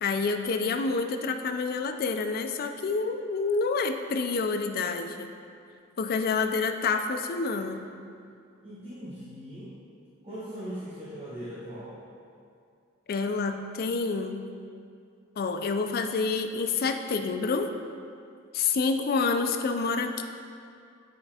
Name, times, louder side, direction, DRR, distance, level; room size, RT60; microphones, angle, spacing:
voice 1, 0.0-5.3 6.0-7.8 13.1-14.4 15.4-17.7 18.5-20.3, left 4 dB, 50° left, 6 dB, 0.4 m, -28 dB
voice 2, 8.6-9.7 10.2-12.0, equal, 30° right, -10 dB, 0.9 m, -39 dB
7.8 x 4.9 x 2.8 m, 2.3 s
head